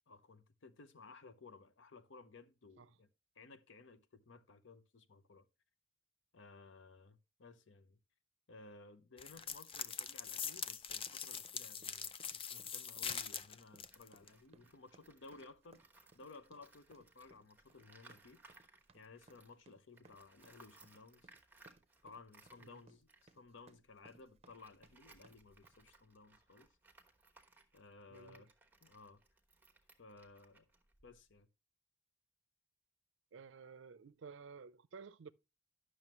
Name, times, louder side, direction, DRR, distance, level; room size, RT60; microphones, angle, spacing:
voice 1, 0.1-3.1 3.4-5.5 6.3-8.0 8.5-15.8 16.1-18.4 18.9-21.3 22.0-26.7 27.7-28.5 28.8-29.2 30.0-30.7 31.0-31.5, left 3 dB, 70° left, 0.7 m, -58 dB
sound 1, 9.2-14.3, left 7 dB, 30° left, 0.5 m, -43 dB
sound 2, 11.0-25.9, right 2 dB, 35° right, 0.7 m, -66 dB
Tools, 13.9-19.6 19.9-31.4, right 2 dB, 10° right, 1.1 m, -66 dB
voice 2, 28.1-28.4 33.3-35.3, right 5 dB, 70° right, 0.5 m, -54 dB
10.5 x 6.3 x 3.0 m
head